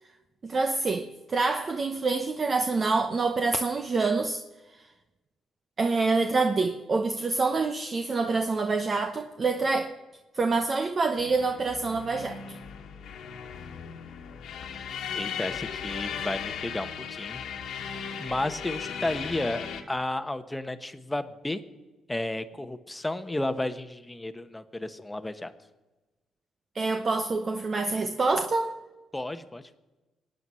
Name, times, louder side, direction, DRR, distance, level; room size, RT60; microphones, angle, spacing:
voice 1, 0.4-4.4 5.8-9.9 10.3-12.4 26.7-28.7, right 3 dB, 35° right, 0.9 m, -26 dB
sound 1, 11.2-19.8, left 7 dB, 75° left, 1.5 m, -37 dB
voice 2, 15.1-17.4 18.2-21.6 22.1-25.5 29.1-29.6, left 1 dB, 10° left, 1.1 m, -32 dB
23.5 x 9.3 x 5.6 m
cardioid pair, 90°, 0 cm